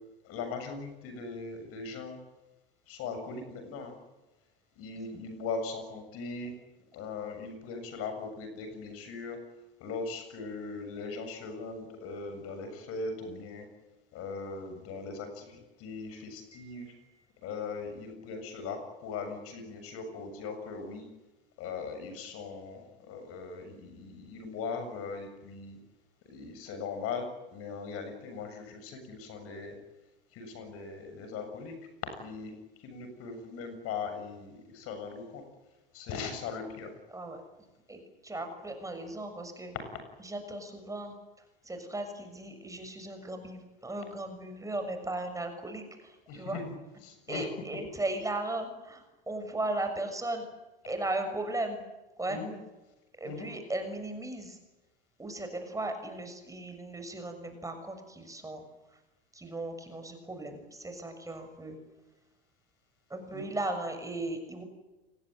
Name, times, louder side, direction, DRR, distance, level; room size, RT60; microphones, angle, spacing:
voice 1, 0.2-2.2 2.9-4.0 4.8-6.5 6.9-9.4 9.8-13.7 14.1-16.9 17.4-21.1 21.6-25.8 26.3-29.8 30.3-31.8 32.2-32.5 32.8-35.4 35.9-36.9 46.3-46.7 47.0-47.5 52.3-52.5 53.2-53.5 61.2-61.3 63.3-63.5, left 4 dB, 50° left, 7 dB, 7.3 m, -39 dB
voice 2, 16.5-16.9 37.1-37.4 37.9-39.7 40.2-41.1 41.6-46.6 47.3-50.5 50.9-51.8 52.2-52.4 53.2-54.6 55.2-58.6 59.3-61.8 63.1-64.6, right 2 dB, 10° right, 6 dB, 6.6 m, -36 dB
29.0 x 20.0 x 9.1 m, 1.1 s
hypercardioid pair, 85°, 30 cm